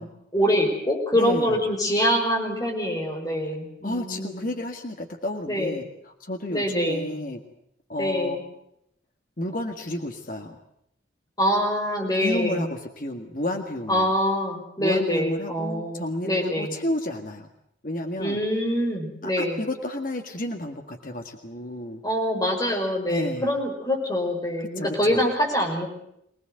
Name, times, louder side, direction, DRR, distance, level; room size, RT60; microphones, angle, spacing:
voice 1, 0.0-4.4 5.5-5.7 6.5-7.1 8.0-8.4 11.4-12.7 13.9-16.7 18.2-19.6 22.0-25.9, equal, 20° left, 1 dB, 5.6 m, -25 dB
voice 2, 1.1-1.6 3.8-5.9 6.2-7.4 7.9-8.5 9.4-10.6 12.2-14.1 14.8-17.5 17.8-18.4 19.2-22.0 23.1-23.6 24.8-25.2, left 1 dB, 45° left, 4 dB, 1.9 m, -31 dB
24.5 x 19.0 x 7.9 m, 0.75 s
head